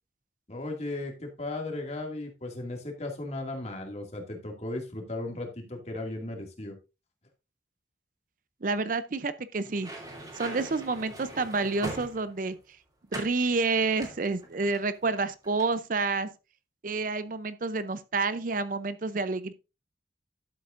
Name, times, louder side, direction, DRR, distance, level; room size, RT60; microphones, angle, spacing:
voice 1, 0.5-6.8, left 2 dB, 35° left, 2.2 m, -36 dB
voice 2, 8.6-9.9 10.3-12.6 13.1-16.3 16.8-19.5, right 3 dB, 50° right, 0.6 m, -29 dB
sound 1, 9.6-12.6 13.1-13.4 14.0-15.2 15.4-15.7, right 1 dB, 20° right, 2.7 m, -41 dB
11.5 x 7.8 x 2.5 m
head